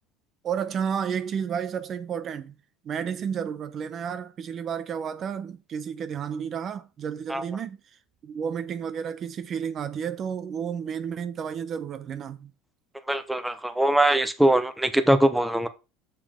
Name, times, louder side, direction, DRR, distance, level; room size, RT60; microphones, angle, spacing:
voice 1, 0.4-2.6 2.8-7.8 8.2-12.5, right 7 dB, 35° right, 0.8 m, -31 dB
voice 2, 13.1-15.7, right 1 dB, 5° right, 0.8 m, -22 dB
7.1 x 7.0 x 3.7 m
supercardioid pair, 125°, 0 cm